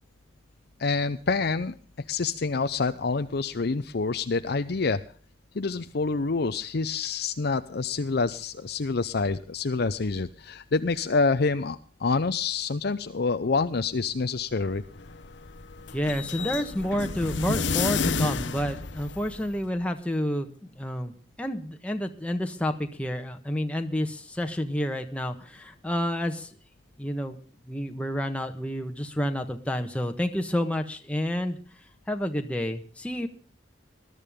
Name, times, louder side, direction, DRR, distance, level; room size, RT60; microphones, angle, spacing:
voice 1, 0.8-1.7 2.1-5.0 5.5-14.8, left 4 dB, 60° left, 9 dB, 0.6 m, -27 dB
sound 1, 14.6-19.7, left 5 dB, 80° left, 1.0 m, -31 dB
voice 2, 15.9-20.5 20.8-21.1 21.4-26.5 27.0-27.4 27.7-31.6 32.1-33.3, equal, 5° left, 4 dB, 1.3 m, -29 dB
21.0 x 12.0 x 3.7 m, 0.41 s
head